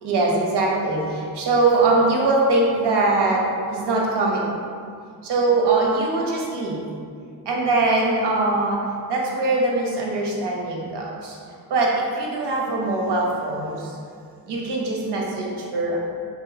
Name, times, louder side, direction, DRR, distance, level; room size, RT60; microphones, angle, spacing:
voice 1, 0.0-4.5 5.2-6.9 7.5-8.8 9.1-11.4 11.7-13.9 14.5-16.0, right 2 dB, 80° right, -2 dB, 1.0 m, -22 dB
3.7 x 2.9 x 4.8 m, 2.2 s
wide cardioid pair, 130°, 40 cm